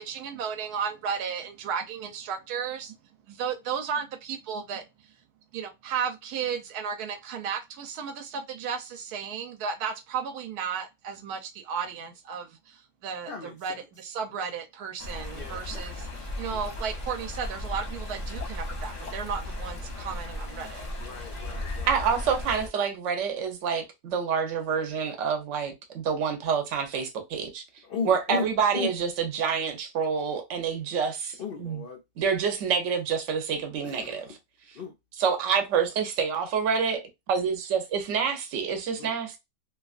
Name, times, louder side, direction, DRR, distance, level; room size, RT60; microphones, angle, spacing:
voice 1, 0.0-2.9 3.4-4.8 5.5-11.4 11.7-12.4 13.0-13.3 13.6-13.7 14.0-16.0 16.4-20.9, right 6 dB, 85° right, 1.2 m, -33 dB
voice 2, 13.3-13.9 15.3-15.8 21.0-21.9 27.9-28.5 28.7-28.9 31.4-32.0 33.8-34.3 34.7-34.9 39.0-39.1, left 5 dB, 85° left, 0.5 m, -35 dB
Stream, 15.0-22.7, left 1 dB, 40° left, 0.7 m, -36 dB
voice 3, 21.9-27.6 28.0-31.8 32.2-34.3 35.2-37.0 37.3-39.4, right 6 dB, 60° right, 1.0 m, -27 dB
2.9 x 2.3 x 2.4 m
omnidirectional pair, 1.6 m